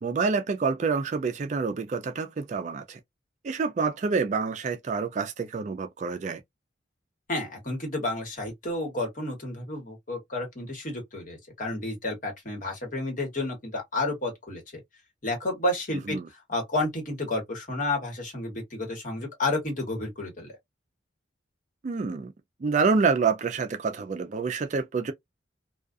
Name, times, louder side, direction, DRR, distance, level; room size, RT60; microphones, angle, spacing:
voice 1, 0.0-3.0 3.4-6.4 16.1-16.3 21.8-22.3 22.6-25.1, right 4 dB, 40° right, 0.3 m, -27 dB
voice 2, 7.3-14.8 15.2-20.5, left 2 dB, 45° left, 1.3 m, -31 dB
2.3 x 2.3 x 2.4 m
head